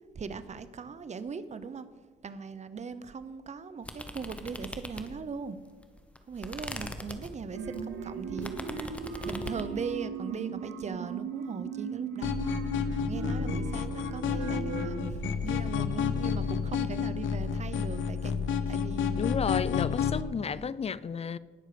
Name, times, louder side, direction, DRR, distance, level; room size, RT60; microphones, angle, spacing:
voice 1, 0.1-1.9 2.2-5.6 6.3-8.5 9.2-12.4 13.1-18.3 18.7-19.3 20.4-20.7, right 5 dB, 35° right, 0.8 m, -39 dB
sound 1, 3.8-5.4 5.8-9.7, left 1 dB, 5° left, 1.1 m, -41 dB
sound 2, 7.5-15.1, right 5 dB, 90° right, 1.2 m, -37 dB
sound 3, 12.2-20.2, left 7 dB, 75° left, 0.9 m, -30 dB
voice 2, 19.2-21.4, left 6 dB, 30° left, 0.4 m, -32 dB
18.5 x 6.4 x 5.0 m
cardioid pair, 90°, 20 cm